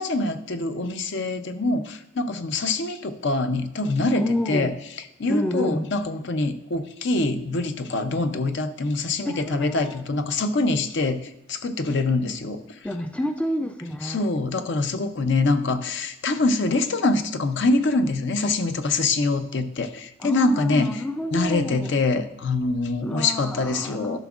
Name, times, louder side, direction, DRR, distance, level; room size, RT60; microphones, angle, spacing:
voice 1, 0.0-4.7 5.2-12.9 14.0-20.9 21.3-24.2, left 3 dB, 60° left, 9 dB, 0.6 m, -24 dB
voice 2, 4.2-4.8 5.3-5.9 9.2-10.0 12.8-14.2 20.2-21.9 23.0-24.2, left 1 dB, 5° left, 6 dB, 0.3 m, -29 dB
13.0 x 6.0 x 2.4 m, 0.88 s
head